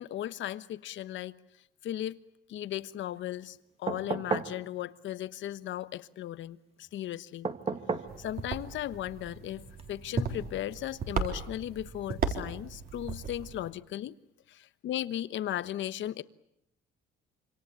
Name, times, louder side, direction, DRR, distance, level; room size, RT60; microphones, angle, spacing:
voice 1, 0.0-1.3 1.8-2.2 2.5-7.5 8.2-14.2 14.5-16.2, left 12 dB, 65° left, 1.2 m, -36 dB
sound 1, 3.9-4.6 7.4-8.2 9.8-9.9, right 4 dB, 30° right, 1.9 m, -32 dB
sound 2, 8.1-13.7, right 5 dB, 45° right, 4.2 m, -36 dB
26.5 x 26.0 x 8.4 m
cardioid pair, 130°, 21 cm